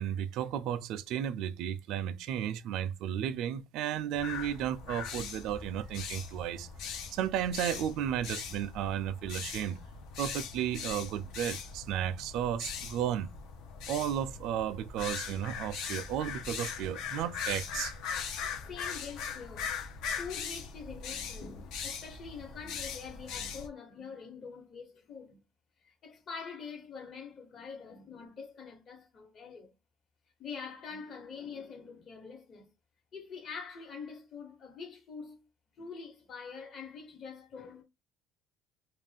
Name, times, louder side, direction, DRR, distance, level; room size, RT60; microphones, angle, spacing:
voice 1, 0.0-6.7 7.1-9.8 10.2-13.3 13.9-17.9, right 10 dB, 70° right, 0.3 m, -33 dB
sound 1, 4.1-23.7, left 6 dB, 75° left, 0.6 m, -40 dB
voice 2, 18.1-25.4 25.8-29.7 30.4-32.7 33.1-35.5 35.8-37.8, left 5 dB, 45° left, 1.1 m, -45 dB
2.4 x 2.2 x 3.4 m
cardioid pair, 110°, 0 cm